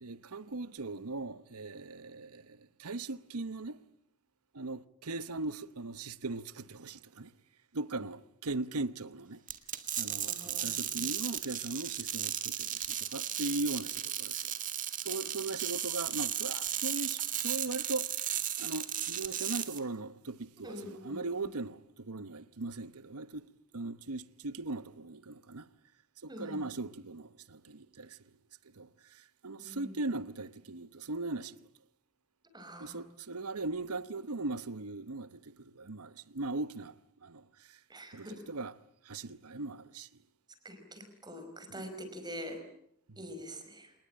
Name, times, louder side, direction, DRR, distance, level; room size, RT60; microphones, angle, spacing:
voice 1, 0.0-3.8 4.5-7.3 7.7-9.4 10.0-14.5 15.0-23.5 23.7-25.7 26.2-28.2 28.7-31.7 32.8-37.8 38.1-38.8 39.0-40.1 41.7-41.9 43.1-43.2, right 2 dB, 80° right, 1.0 m, -39 dB
sound 1, 9.5-19.8, right 10 dB, 35° right, 2.0 m, -35 dB
voice 2, 10.3-10.8 20.6-21.2 26.3-26.6 29.6-29.9 32.5-33.1 37.9-38.4 40.6-42.6 43.2-43.9, equal, 20° right, 4.9 m, -45 dB
28.0 x 19.5 x 8.9 m
head